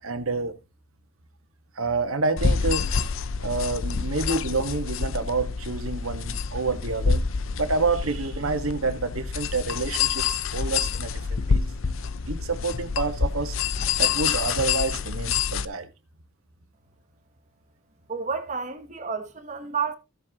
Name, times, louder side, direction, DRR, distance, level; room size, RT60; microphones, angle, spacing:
voice 1, 0.0-0.6 1.7-2.9 3.4-7.2 7.5-11.6 12.3-13.6 14.0-15.9, right 3 dB, 90° right, 1.6 m, -28 dB
sound 1, 2.4-15.7, left 6 dB, 75° left, 0.6 m, -27 dB
voice 2, 18.1-19.9, right 5 dB, 35° right, 1.1 m, -30 dB
15.5 x 7.3 x 2.9 m
head